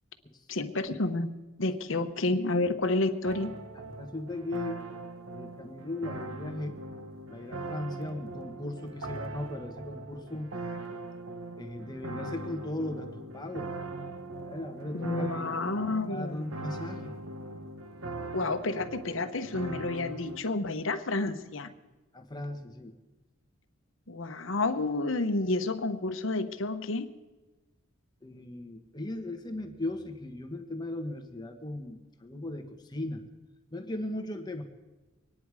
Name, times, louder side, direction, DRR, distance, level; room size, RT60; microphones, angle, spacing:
voice 1, 0.5-1.3 1.6-3.5 14.9-16.4 18.3-21.7 24.1-27.1, left 2 dB, 65° left, 8 dB, 1.0 m, -30 dB
sound 1, 3.2-20.4, right 2 dB, 85° right, 1.3 m, -40 dB
voice 2, 3.7-4.8 5.3-6.8 7.3-10.5 11.6-13.8 14.3-15.4 15.9-17.2 22.1-22.9 28.2-33.2 33.7-34.6, left 1 dB, 20° left, 4 dB, 1.4 m, -38 dB
24.0 x 10.0 x 4.9 m, 1.2 s
head